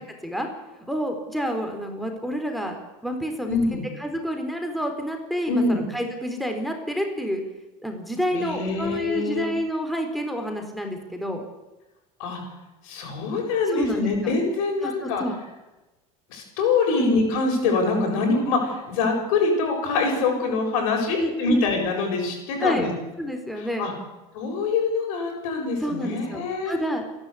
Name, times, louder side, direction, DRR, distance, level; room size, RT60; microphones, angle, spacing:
voice 1, 0.9-2.8 3.0-3.6 4.0-7.4 7.8-11.4 13.7-14.3 14.8-15.3 17.0-17.2 21.2-21.7 22.6-22.9 23.2-23.9 25.8-27.0, equal, ahead, 4 dB, 4.1 m, -28 dB
voice 2, 3.5-3.8 5.5-5.8 8.3-9.5 12.2-12.4 12.8-15.2 16.3-22.9 23.6-23.9 24.3-26.8, left 3 dB, 85° left, 2 dB, 7.5 m, -24 dB
28.5 x 11.5 x 8.5 m, 1.1 s
supercardioid pair, 110°, 17 cm